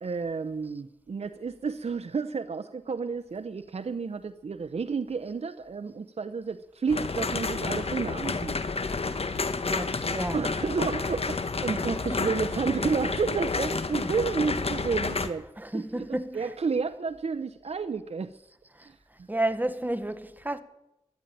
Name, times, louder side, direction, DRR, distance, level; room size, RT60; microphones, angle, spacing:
voice 1, 0.0-8.6 10.3-15.5 15.7-18.3 18.9-19.0, right 5 dB, 60° right, 0.7 m, -31 dB
sound 1, 6.9-15.3, left 4 dB, 55° left, 1.2 m, -30 dB
voice 2, 9.7-10.4 11.7-11.8 12.1-12.2 15.6-16.4 19.3-20.6, right 1 dB, 15° right, 1.2 m, -31 dB
13.0 x 11.5 x 9.1 m
wide cardioid pair, 65°, 12 cm